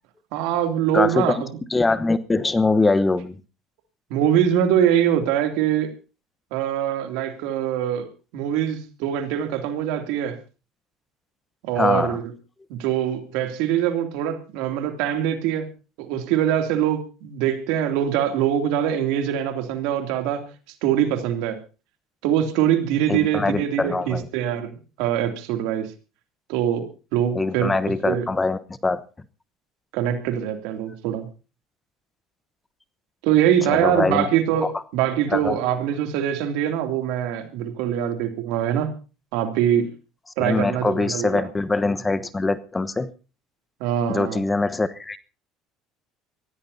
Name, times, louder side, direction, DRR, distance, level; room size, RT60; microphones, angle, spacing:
voice 1, 0.3-1.5 4.1-5.9 6.5-8.1 8.3-10.4 11.6-12.2 12.7-15.7 16.0-20.5 20.8-21.6 22.2-24.7 25.0-25.9 26.5-26.9 27.1-27.7 28.1-28.3 29.9-31.3 33.2-38.9 39.3-39.9 40.4-41.5 43.8-44.4, right 10 dB, 75° right, 2.8 m, -23 dB
voice 2, 0.9-1.3 1.7-3.3 11.8-12.2 23.1-24.2 27.3-29.0 33.7-34.3 35.3-35.6 40.4-43.1 44.1-45.2, left 3 dB, 20° left, 1.1 m, -23 dB
24.0 x 16.0 x 2.8 m
supercardioid pair, 85°, 0 cm